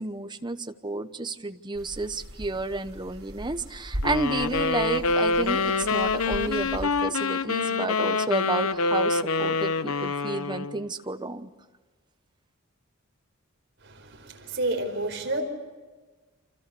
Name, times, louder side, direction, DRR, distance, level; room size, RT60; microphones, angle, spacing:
voice 1, 0.0-11.5, right 2 dB, 20° right, 9 dB, 1.0 m, -31 dB
sound 1, 1.7-6.9, equal, 75° right, 3.7 m, -39 dB
sound 2, 4.0-10.8, left 4 dB, 80° left, 0.8 m, -26 dB
voice 2, 13.8-15.4, right 2 dB, 55° right, 3 dB, 4.7 m, -30 dB
29.0 x 26.0 x 7.0 m, 1.3 s
head